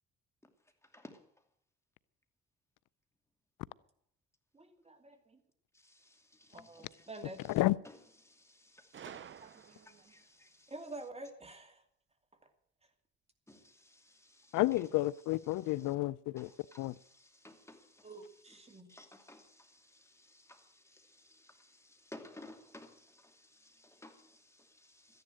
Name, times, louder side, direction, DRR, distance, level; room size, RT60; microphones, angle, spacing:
voice 1, 0.8-1.5 5.7-7.6 7.8-8.0 8.2-10.7 13.5-14.6 15.5-15.9 16.4-25.2, left 1 dB, 10° left, 2.6 m, -57 dB
voice 2, 4.5-5.4 6.5-7.4 9.6-10.0 10.7-11.8 18.0-18.9, right 2 dB, 20° right, 2.6 m, -48 dB
voice 3, 7.4-7.8 14.5-16.5 16.8-16.9, left 18 dB, 90° left, 0.5 m, -31 dB
Gunshot gunfire, 8.9-10.2, right 9 dB, 40° right, 0.6 m, -50 dB
14.0 x 10.5 x 7.8 m
cardioid pair, 90°, 30 cm